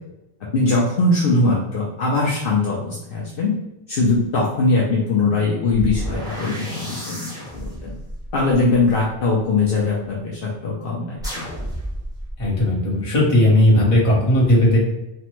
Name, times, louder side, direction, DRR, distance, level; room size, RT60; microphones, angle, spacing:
voice 1, 0.5-3.5 3.9-8.0 8.3-11.4, left 3 dB, 65° left, -4 dB, 0.8 m, -21 dB
sound 1, 5.7-9.8 11.2-12.6, equal, 5° right, 1.0 m, -32 dB
voice 2, 12.4-14.8, left 1 dB, 35° left, -5 dB, 1.0 m, -16 dB
3.3 x 2.1 x 2.9 m, 0.90 s
omnidirectional pair, 1.1 m